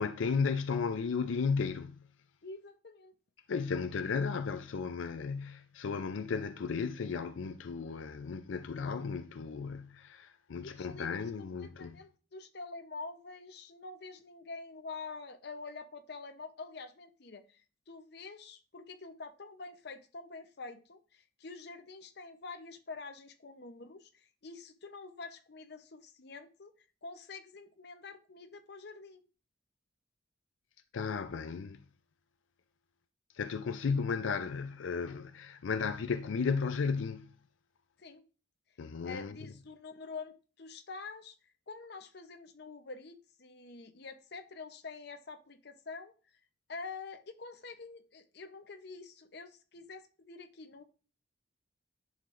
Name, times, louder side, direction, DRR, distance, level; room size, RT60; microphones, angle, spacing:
voice 1, 0.0-2.0 3.5-12.0 30.9-31.8 33.3-37.3 38.8-39.4, left 5 dB, 85° left, 0.5 m, -34 dB
voice 2, 2.4-3.1 10.6-17.6 17.9-26.7 27.0-29.2 38.0-38.2 39.0-41.4 41.7-46.1 46.7-50.8, left 4 dB, 55° left, 0.8 m, -47 dB
10.5 x 6.5 x 2.5 m
head